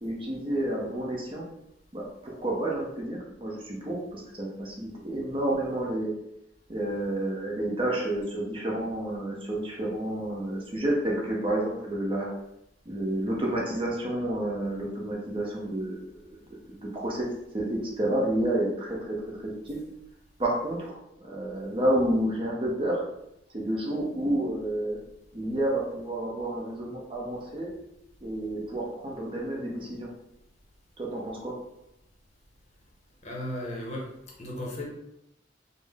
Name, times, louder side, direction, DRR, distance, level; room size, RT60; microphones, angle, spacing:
voice 1, 0.0-1.4 1.9-6.1 6.7-12.3 12.9-17.3 17.5-19.2 19.4-19.8 20.4-23.0 23.5-25.0 25.3-27.7 28.2-30.1 31.0-31.5, right 1 dB, 30° right, -3 dB, 0.7 m, -30 dB
voice 2, 33.2-34.1 34.4-34.8, left 1 dB, 40° left, -2 dB, 0.7 m, -35 dB
3.6 x 2.0 x 3.4 m, 0.82 s
head